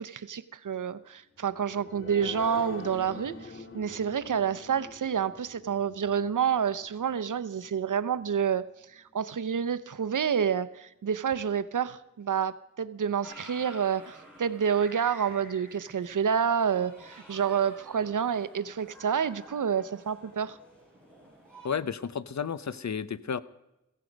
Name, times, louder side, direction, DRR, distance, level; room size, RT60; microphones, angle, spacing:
voice 1, 0.0-8.6 8.9-20.6, right 7 dB, 85° right, 15 dB, 0.7 m, -29 dB
sound 1, 1.4-8.5 8.9-9.0 9.4-9.5, left 3 dB, 40° left, 1.9 m, -46 dB
sound 2, 13.2-21.7, equal, 5° left, 6.8 m, -51 dB
voice 2, 21.6-23.4, left 7 dB, 65° left, 16 dB, 0.7 m, -32 dB
16.0 x 15.5 x 5.2 m, 0.92 s
wide cardioid pair, 75°, 30 cm